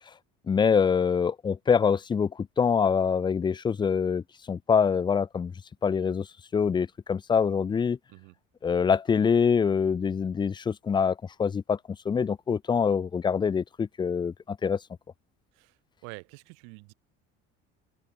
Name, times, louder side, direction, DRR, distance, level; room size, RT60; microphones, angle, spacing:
voice 1, 0.5-5.5 5.8-6.3 6.5-8.0 8.6-11.8 12.1-14.8, left 6 dB, 15° left, 0.3 m, -25 dB
voice 2, 15.5-16.9, right 37 dB, 90° right, 5.1 m, -47 dB
open air
cardioid pair, 110°, 29 cm